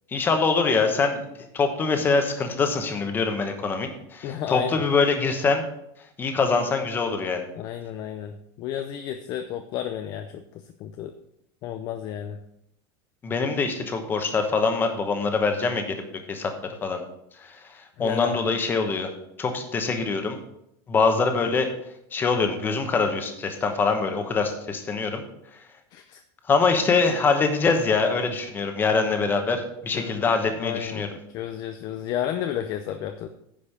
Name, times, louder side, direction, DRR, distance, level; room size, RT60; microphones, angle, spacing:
voice 1, 0.1-1.2 1.5-5.6 6.2-7.4 13.2-16.0 16.3-16.5 16.8-17.0 17.4-17.6 18.0-19.1 19.4-20.4 20.9-21.7 22.1-25.2 26.5-31.1, left 4 dB, 15° left, 6 dB, 1.1 m, -24 dB
voice 2, 4.2-4.8 7.5-11.1 11.6-12.4 18.0-18.5 25.9-26.2 29.9-30.3 30.6-33.3, left 10 dB, 30° left, 7 dB, 0.5 m, -32 dB
10.0 x 5.4 x 6.5 m, 0.78 s
supercardioid pair, 170°, 13 cm